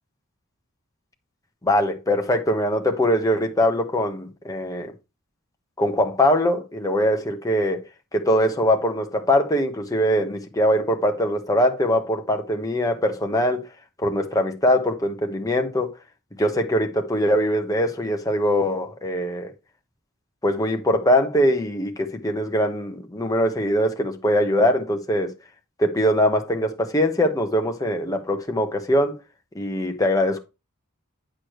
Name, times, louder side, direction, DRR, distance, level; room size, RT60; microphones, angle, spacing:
voice 1, 1.6-4.9 5.8-7.8 8.1-13.7 14.0-15.9 16.4-19.5 20.4-25.3 25.8-29.2 29.5-30.4, equal, 15° left, 1.1 m, -22 dB
8.4 x 6.4 x 3.1 m
head